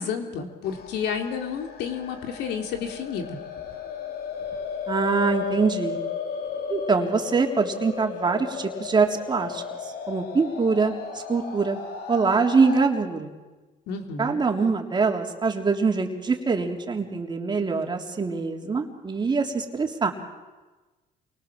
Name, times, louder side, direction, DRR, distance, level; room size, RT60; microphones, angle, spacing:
voice 1, 0.0-3.4 13.9-14.4, left 6 dB, 85° left, 5 dB, 3.6 m, -31 dB
sound 1, 0.6-12.8, left 6 dB, 65° left, 3.1 m, -35 dB
voice 2, 4.9-6.0 6.7-9.6 10.1-11.8 12.1-13.3 14.2-20.1, right 4 dB, 25° right, 3 dB, 3.5 m, -24 dB
29.0 x 24.0 x 7.6 m, 1.2 s
cardioid pair, 110°, 17 cm